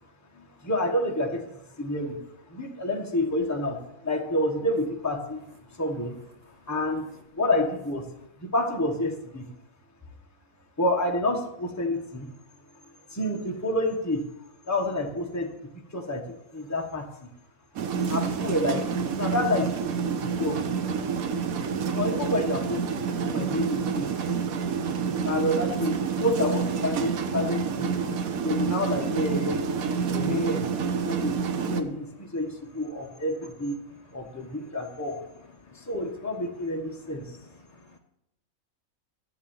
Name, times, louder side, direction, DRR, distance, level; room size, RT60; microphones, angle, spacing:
voice 1, 0.3-2.2 2.5-5.5 5.8-6.2 6.7-7.1 7.4-8.1 8.4-9.5 10.8-12.3 13.1-14.3 14.7-15.5 15.9-17.3 18.1-18.8 19.2-20.6 21.9-24.1 25.2-28.0 28.4-29.7 30.1-30.7 31.1-33.8 34.1-35.2 35.7-37.2, left 1 dB, 10° left, 1 dB, 1.3 m, -29 dB
sound 1, 17.8-31.8, right 6 dB, 85° right, 1.3 m, -28 dB
voice 2, 28.0-28.5 30.0-30.4 31.3-32.3 34.2-34.7 35.6-35.9 37.7-38.0, left 4 dB, 45° left, 5 dB, 0.5 m, -55 dB
10.5 x 7.3 x 7.3 m, 0.81 s
omnidirectional pair, 1.5 m